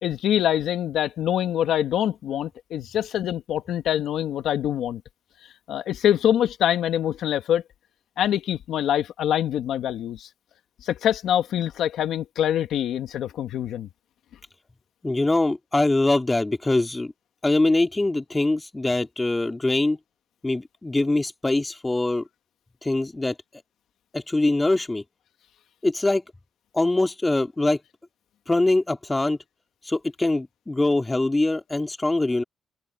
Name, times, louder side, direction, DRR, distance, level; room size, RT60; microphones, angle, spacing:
voice 1, 0.0-5.0 5.7-7.6 8.2-10.3 10.8-13.9, left 10 dB, 75° left, 1.8 m, -24 dB
voice 2, 15.0-17.1 17.4-20.0 20.4-22.3 22.8-23.4 24.1-25.0 25.8-26.2 26.7-27.8 28.5-29.4 29.8-32.4, left 2 dB, 15° left, 2.6 m, -23 dB
cardioid pair, 90°, 0 cm